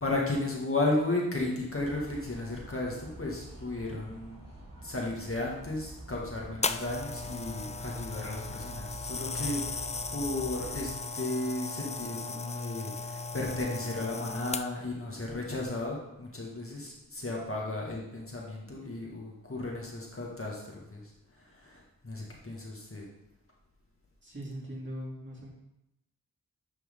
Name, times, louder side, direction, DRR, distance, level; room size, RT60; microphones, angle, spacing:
voice 1, 0.0-4.4 4.7-9.8 10.1-21.0 21.5-23.1, left 2 dB, 40° left, -3 dB, 1.9 m, -34 dB
sound 1, 1.8-11.0, right 1 dB, 65° right, 2.5 m, -47 dB
sound 2, 6.6-14.9 15.7-15.9, left 4 dB, 20° left, 0.4 m, -36 dB
voice 2, 24.2-25.5, equal, 35° right, -5 dB, 2.9 m, -40 dB
10.5 x 4.5 x 3.7 m, 0.88 s
cardioid pair, 50°, 34 cm